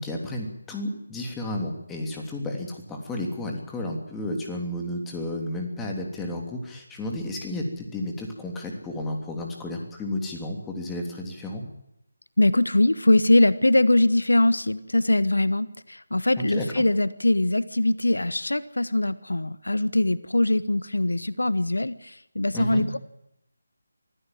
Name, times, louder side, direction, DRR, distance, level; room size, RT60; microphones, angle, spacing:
voice 1, 0.0-11.6 16.4-16.7 22.5-22.8, left 1 dB, 10° left, 1 dB, 3.2 m, -32 dB
voice 2, 12.4-23.0, left 1 dB, 80° left, 16 dB, 1.1 m, -22 dB
25.0 x 16.0 x 7.7 m, 0.83 s
figure-of-eight pair, 160°, 0 cm